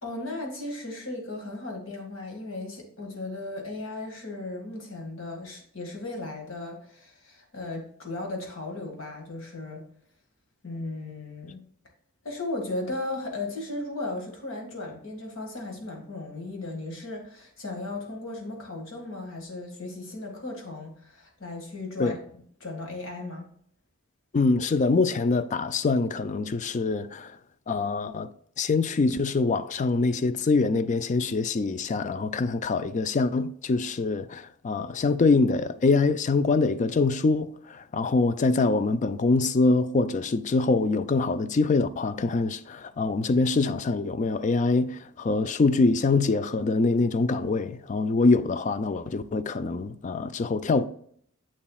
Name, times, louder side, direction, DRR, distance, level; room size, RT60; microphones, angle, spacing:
voice 1, 0.0-9.8 10.6-11.6 12.2-22.2 22.6-23.5, left 2 dB, 65° left, 1.9 m, -36 dB
voice 2, 24.3-27.3 27.7-28.3 28.6-50.8, left 3 dB, 35° left, 0.4 m, -24 dB
7.6 x 7.1 x 2.3 m
head